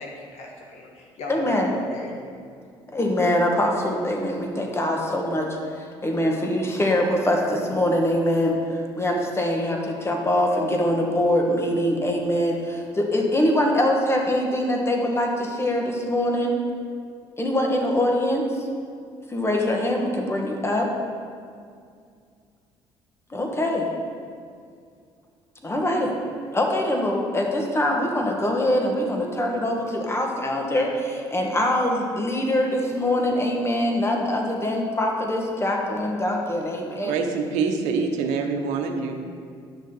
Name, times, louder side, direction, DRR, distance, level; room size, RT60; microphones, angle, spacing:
voice 1, 0.0-2.1, left 2 dB, 70° left, -2 dB, 1.9 m, -38 dB
voice 2, 1.3-1.7 2.9-16.6 17.4-18.6 19.3-20.9 23.3-23.9 25.6-26.2 26.5-37.2, left 1 dB, 20° left, 1 dB, 1.7 m, -23 dB
voice 3, 37.0-39.4, right 5 dB, 80° right, 4 dB, 0.9 m, -25 dB
11.0 x 6.4 x 4.1 m, 2.2 s
supercardioid pair, 70°, 12 cm